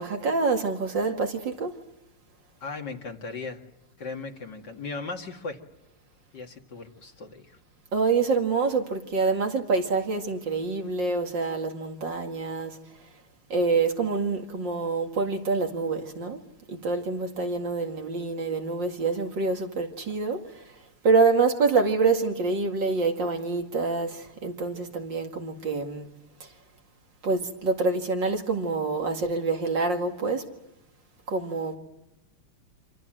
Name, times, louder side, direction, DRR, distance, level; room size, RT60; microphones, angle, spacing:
voice 1, 0.0-1.7 7.9-12.8 13.5-16.4 16.7-20.7 21.0-26.1 26.4-26.5 27.2-30.5 31.3-31.8, right 4 dB, 55° right, 2.8 m, -26 dB
voice 2, 2.6-3.6 4.0-5.6 6.3-7.6, left 4 dB, 50° left, 2.7 m, -37 dB
27.0 x 26.0 x 7.7 m
omnidirectional pair, 2.4 m